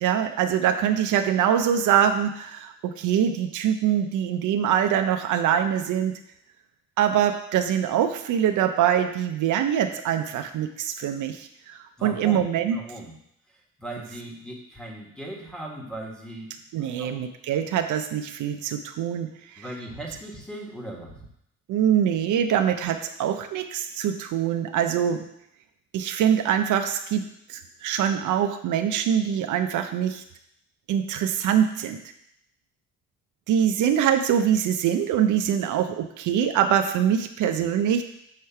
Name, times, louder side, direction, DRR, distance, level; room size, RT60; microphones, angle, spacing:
voice 1, 0.0-6.1 7.0-12.8 16.7-19.6 21.7-25.3 25.9-30.2 30.9-32.0 33.5-38.0, right 9 dB, 80° right, 7 dB, 0.6 m, -24 dB
voice 2, 12.0-13.1 13.8-17.2 19.6-21.3, right 1 dB, 5° left, -2 dB, 1.5 m, -38 dB
6.6 x 3.2 x 5.7 m, 0.74 s
cardioid pair, 90°, 30 cm